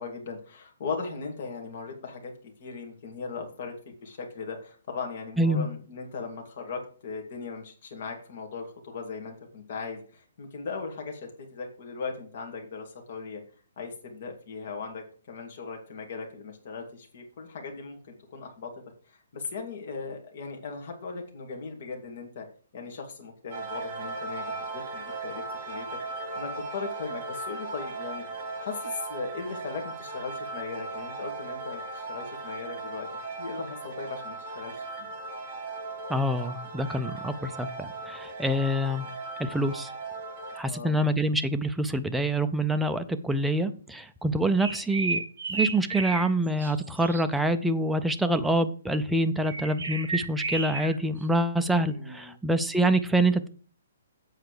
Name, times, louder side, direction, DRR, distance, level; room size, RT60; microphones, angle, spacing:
voice 1, 0.0-2.3 2.6-3.7 4.0-13.4 13.8-18.7 19.3-22.5 22.7-25.9 26.1-28.2 28.6-33.1 33.4-34.7 40.6-41.1 51.9-52.3, left 4 dB, 35° left, 2 dB, 2.3 m, -38 dB
sound 1, 23.5-40.6, right 3 dB, 25° right, 1.8 m, -37 dB
voice 2, 36.1-39.1 39.4-39.9 40.6-45.2 45.5-53.5, right 1 dB, ahead, 8 dB, 0.4 m, -26 dB
sound 2, 44.6-46.3 46.6-47.2 49.4-50.9, right 3 dB, 55° right, 2.7 m, -32 dB
8.1 x 4.8 x 6.6 m, 0.40 s
hypercardioid pair, 180°, 0 cm